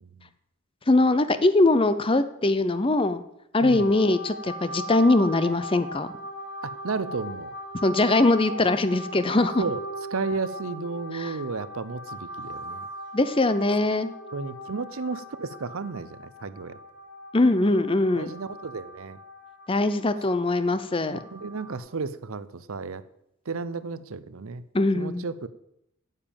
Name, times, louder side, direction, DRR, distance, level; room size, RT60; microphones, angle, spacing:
voice 1, 0.9-3.2 3.5-6.1 7.8-9.6 11.1-11.3 13.1-14.1 17.3-18.3 19.7-21.2 24.7-25.2, left 2 dB, 25° left, 12 dB, 0.6 m, -22 dB
voice 2, 3.6-3.9 6.6-7.5 9.6-9.8 10.1-12.9 14.3-16.8 18.2-19.2 21.1-23.0 23.5-24.6 24.9-25.5, right 4 dB, 70° right, 15 dB, 0.7 m, -33 dB
sound 1, 3.7-21.8, equal, 45° left, 4.9 m, -39 dB
9.5 x 7.3 x 8.8 m, 0.79 s
head